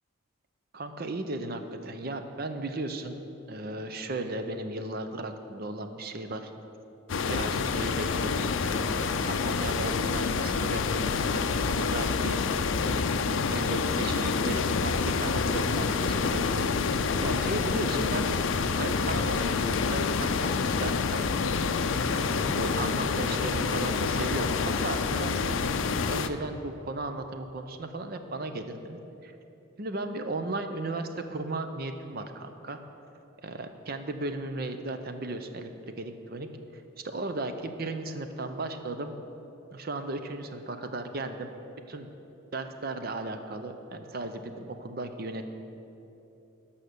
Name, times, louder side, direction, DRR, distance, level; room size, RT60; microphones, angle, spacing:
voice 1, 0.7-3.2 3.5-6.5 7.3-13.1 13.5-16.8 17.2-18.3 18.7-21.3 22.1-24.6 24.8-25.6 26.1-29.4 29.8-32.8 33.4-35.7 36.0-39.1 39.7-41.5 41.9-42.1 42.5-45.5, right 2 dB, 50° right, 7 dB, 0.6 m, -36 dB
sound 1, 7.1-26.3, left 5 dB, 65° left, 0.4 m, -27 dB
12.5 x 5.7 x 6.7 m, 2.9 s
head